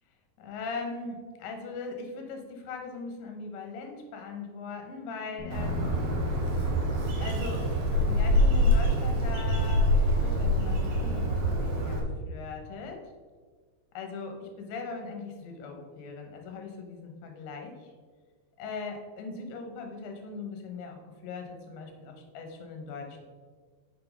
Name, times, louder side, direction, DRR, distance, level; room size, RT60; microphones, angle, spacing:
voice 1, 0.4-5.9 7.2-13.0 14.0-17.9 18.6-23.2, left 4 dB, 90° left, 3 dB, 3.5 m, -40 dB
Bass guitar, 5.4-10.1 10.4-11.6, right 2 dB, 45° left, 1.8 m, -39 dB
Bird, 5.5-12.0, equal, 85° right, 3.6 m, -25 dB
7.7 x 6.5 x 4.0 m, 1.5 s
omnidirectional pair, 5.0 m